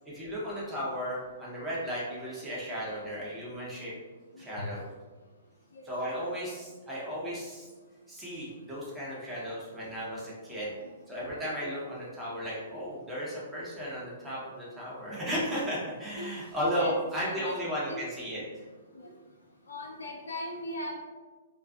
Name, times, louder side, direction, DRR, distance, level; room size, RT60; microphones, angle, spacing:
voice 1, 0.0-3.9 4.4-4.8 5.8-7.7 8.1-10.7 11.1-18.4, equal, 5° right, -8 dB, 0.7 m, -35 dB
voice 2, 4.3-4.7 5.7-6.2 10.8-11.3 11.6-11.9 14.7-14.8 15.8-16.3 16.8-17.6 17.9-18.0 18.9-19.1 19.7-20.9, left 1 dB, 70° left, 0 dB, 0.4 m, -41 dB
2.4 x 2.2 x 2.3 m, 1.3 s
figure-of-eight pair, 115°, 0 cm